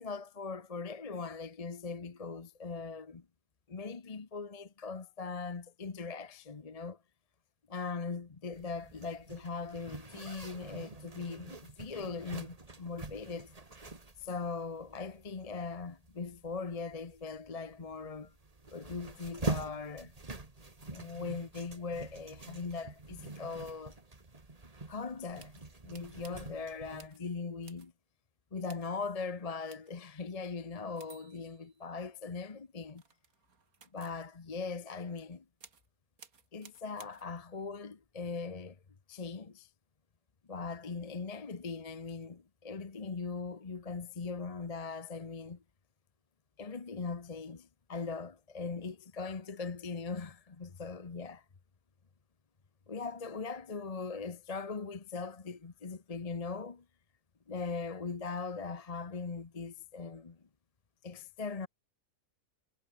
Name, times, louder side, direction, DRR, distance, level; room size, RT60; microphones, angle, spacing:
voice 1, 0.0-3.2 3.7-7.0 7.7-13.5 14.2-18.3 18.7-20.1 20.9-23.9 24.9-25.5 25.8-27.9 28.5-33.0 33.9-35.4 36.5-38.8 39.1-39.7 40.5-45.6 46.6-51.4 52.9-56.8 57.5-60.4 61.0-61.7, left 4 dB, 30° left, 1.0 m, -40 dB
Zipper (clothing), 8.5-27.1, right 3 dB, 25° right, 2.0 m, -45 dB
sound 1, 25.4-26.5 27.0-27.2 27.6-27.9 28.7-28.9 29.7-30.0 31.0-32.4 32.9-34.2 35.6-35.9 36.2-37.4, right 5 dB, 80° right, 2.5 m, -58 dB
omnidirectional pair, 1.5 m